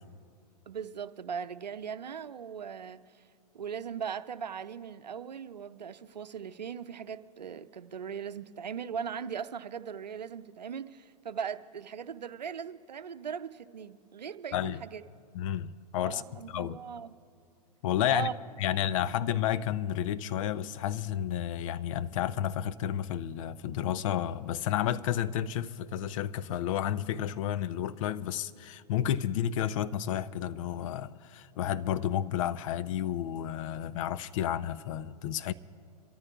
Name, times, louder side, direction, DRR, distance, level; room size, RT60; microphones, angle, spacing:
voice 1, 0.7-3.0 3.5-15.0 16.0-17.1 18.1-18.3 18.7-19.1, right 7 dB, 85° right, 0.6 m, -39 dB
voice 2, 15.3-16.2 16.5-16.8 17.8-18.3 18.6-35.5, left 10 dB, 50° left, 0.6 m, -31 dB
26.0 x 14.0 x 2.4 m
hypercardioid pair, 110°, 21 cm